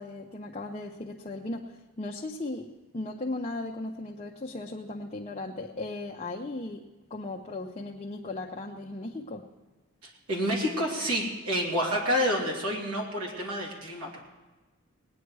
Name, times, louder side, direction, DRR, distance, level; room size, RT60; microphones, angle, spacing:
voice 1, 0.0-6.8 7.1-9.5, left 2 dB, 30° left, 0 dB, 0.6 m, -37 dB
voice 2, 10.0-14.2, equal, 85° right, -1 dB, 2.7 m, -29 dB
19.0 x 9.4 x 4.7 m, 1.2 s
head